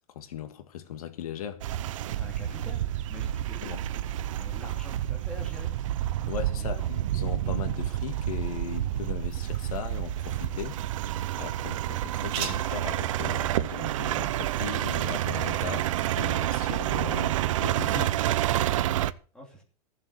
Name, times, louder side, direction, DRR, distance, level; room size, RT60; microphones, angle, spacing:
voice 1, 0.0-1.6 3.6-3.8 6.3-10.8 11.4-18.2, left 10 dB, 75° left, 1.9 m, -38 dB
sound 1, 1.6-19.1, right 13 dB, 60° right, 0.7 m, -29 dB
voice 2, 2.1-4.0 4.4-5.7 6.6-6.9 19.3-19.6, left 1 dB, 5° left, 3.0 m, -45 dB
sound 2, 8.3-15.8, right 8 dB, 40° right, 3.3 m, -45 dB
15.0 x 7.5 x 6.5 m
supercardioid pair, 170°, 19 cm